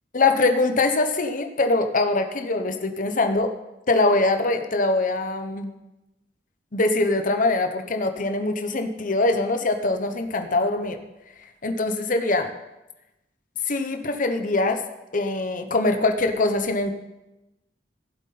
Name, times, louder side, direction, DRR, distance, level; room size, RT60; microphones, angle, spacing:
voice 1, 0.1-3.5 3.9-5.7 6.7-11.0 11.6-12.5 13.7-14.8 15.1-16.9, left 2 dB, 50° left, 6 dB, 1.0 m, -23 dB
15.5 x 8.0 x 4.2 m, 0.97 s
head